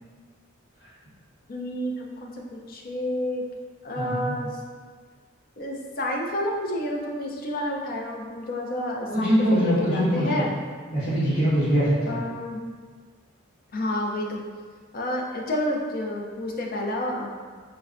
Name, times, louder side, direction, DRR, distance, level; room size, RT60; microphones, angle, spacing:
voice 1, 1.5-3.4 3.8-4.5 5.6-9.4 9.6-10.5 12.1-12.6 13.7-14.4 14.9-17.4, left 1 dB, 45° left, 0 dB, 0.4 m, -29 dB
voice 2, 3.9-4.3 9.0-10.5 10.9-12.2, equal, 65° left, -15 dB, 1.3 m, -23 dB
4.4 x 2.1 x 2.5 m, 1.5 s
head